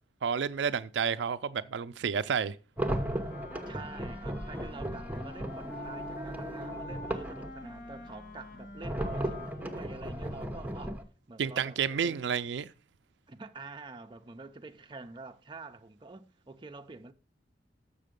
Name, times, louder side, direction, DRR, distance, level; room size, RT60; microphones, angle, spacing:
voice 1, 0.2-2.6 11.4-12.7, right 7 dB, 80° right, 0.4 m, -30 dB
Wind instrument woodwind instrument, 2.8-10.6, left 1 dB, 50° left, 2.3 m, -46 dB
sound 1, 2.8-7.5 8.8-11.0, right 1 dB, 10° right, 0.9 m, -36 dB
voice 2, 3.7-11.0 11.3-12.3 13.3-17.1, right 3 dB, 25° right, 0.6 m, -47 dB
sound 2, 5.8-9.9, equal, 70° left, 1.4 m, -54 dB
6.9 x 6.6 x 5.1 m
head